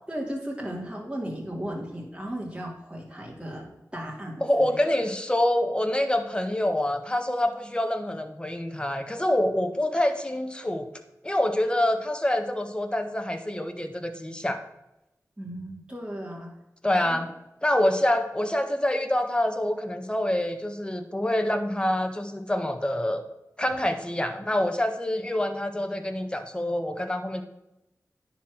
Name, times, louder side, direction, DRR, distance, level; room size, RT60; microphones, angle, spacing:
voice 1, 0.1-4.7 9.9-10.0 15.4-16.5 17.0-17.2, equal, 15° right, -2 dB, 3.0 m, -36 dB
voice 2, 4.4-10.9 11.2-14.6 16.8-17.3 17.6-23.2 23.6-27.4, left 1 dB, 15° left, 7 dB, 1.5 m, -26 dB
10.0 x 4.6 x 6.5 m, 0.91 s
cardioid pair, 40°, 6 cm